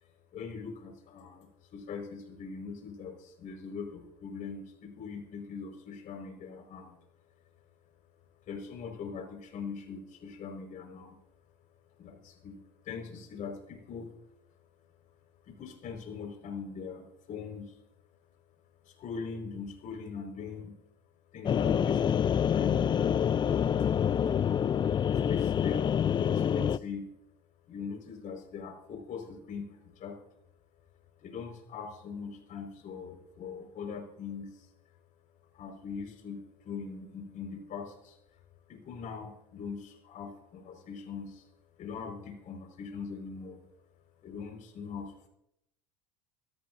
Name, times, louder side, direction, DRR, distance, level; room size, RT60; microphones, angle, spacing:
voice 1, 0.3-1.5 1.7-7.0 8.5-11.2 12.0-14.1 15.5-17.7 18.8-20.7 21.3-22.8 24.0-24.3 25.1-27.1 27.7-30.2 31.2-34.7 35.5-38.2 38.7-41.5 41.8-43.6 44.2-45.3, left 5 dB, 45° left, 3 dB, 5.0 m, -41 dB
sound 1, 21.4-26.8, left 8 dB, 25° left, 0.5 m, -27 dB
25.5 x 13.0 x 2.7 m, 0.81 s
hypercardioid pair, 80°, 19 cm